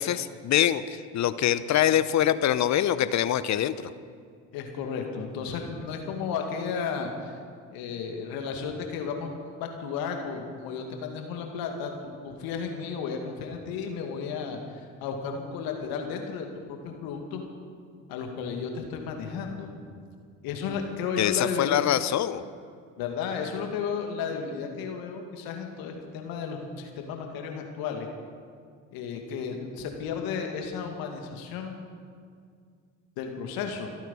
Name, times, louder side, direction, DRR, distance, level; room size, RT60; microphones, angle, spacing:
voice 1, 0.0-3.7 21.2-22.4, left 11 dB, 45° left, 14 dB, 0.8 m, -24 dB
voice 2, 4.5-7.3 7.7-17.5 18.1-19.7 20.4-21.7 23.0-28.1 28.9-31.7 33.2-33.9, left 6 dB, 65° left, 3 dB, 2.3 m, -33 dB
25.5 x 9.0 x 5.6 m, 2.2 s
hypercardioid pair, 60°, 38 cm